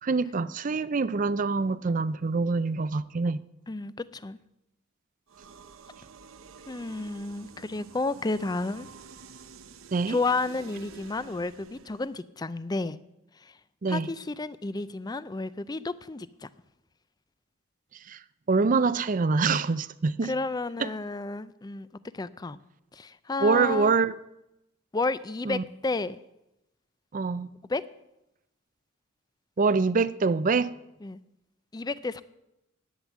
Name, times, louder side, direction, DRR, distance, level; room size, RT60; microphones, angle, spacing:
voice 1, 0.0-3.4 9.9-10.2 13.8-14.1 18.1-18.2 18.5-20.3 20.8-20.9 23.4-24.1 25.5-25.6 27.1-27.5 29.6-30.7, right 4 dB, 40° right, 0.5 m, -25 dB
voice 2, 3.7-4.4 6.7-8.9 10.1-13.0 13.9-16.5 20.2-21.9 22.1-22.6 22.9-23.9 24.9-26.2 27.7-27.8 31.0-31.2 31.7-32.2, left 3 dB, 20° left, 0.4 m, -31 dB
sound 1, 5.3-12.2, right 5 dB, 85° right, 0.8 m, -49 dB
11.5 x 9.1 x 7.3 m
head